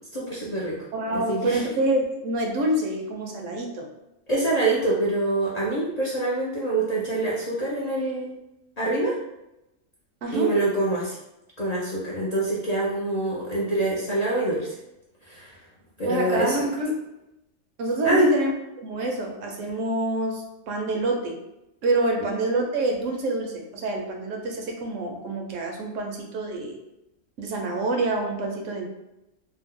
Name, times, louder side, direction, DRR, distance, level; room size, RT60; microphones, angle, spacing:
voice 1, 0.1-0.8 1.1-1.6 4.3-8.4 8.8-9.1 10.3-11.2 11.6-14.7 15.3-15.5 16.0-16.6 18.0-18.3 22.2-22.4, right 2 dB, 45° left, -7 dB, 0.5 m, -25 dB
voice 2, 0.9-3.9 10.2-10.5 16.0-16.9 17.8-18.5 18.8-21.4 21.8-26.8 27.4-28.8, right 2 dB, 75° right, 1 dB, 1.0 m, -26 dB
2.7 x 2.1 x 3.6 m, 0.89 s
omnidirectional pair, 1.4 m